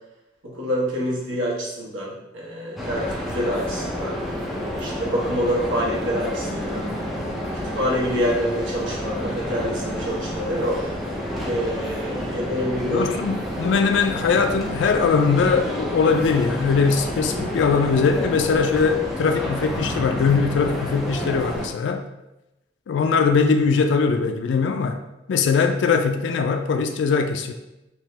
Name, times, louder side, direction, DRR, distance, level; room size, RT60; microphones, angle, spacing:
voice 1, 0.4-4.2 4.8-6.9 7.7-10.8 11.4-13.1, equal, 80° right, -5 dB, 1.1 m, -26 dB
sound 1, 2.8-21.7, equal, ahead, 0.4 m, -29 dB
voice 2, 12.9-22.0 22.9-25.0 25.3-27.5, left 5 dB, 65° left, 7 dB, 0.3 m, -21 dB
3.5 x 2.8 x 3.1 m, 0.94 s
head